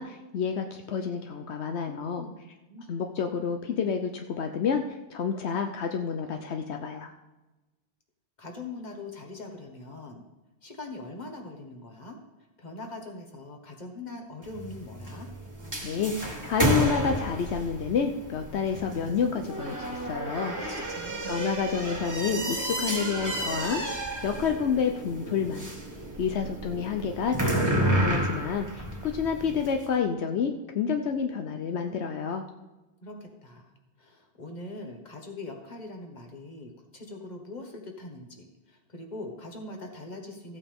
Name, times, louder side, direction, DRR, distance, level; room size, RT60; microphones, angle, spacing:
voice 1, 0.0-2.3 2.9-7.1 15.8-20.5 21.3-23.8 24.2-25.6 26.2-32.4, left 6 dB, 80° left, 5 dB, 1.0 m, -29 dB
voice 2, 1.6-2.4 2.7-3.0 8.4-10.3 10.6-12.2 12.6-15.3 19.7-20.1 20.4-21.3 33.0-40.6, left 2 dB, 40° left, 2 dB, 1.6 m, -42 dB
sound 1, 14.4-29.8, right 1 dB, 15° right, 1.7 m, -31 dB
15.0 x 8.6 x 3.6 m, 1.1 s
omnidirectional pair, 1.1 m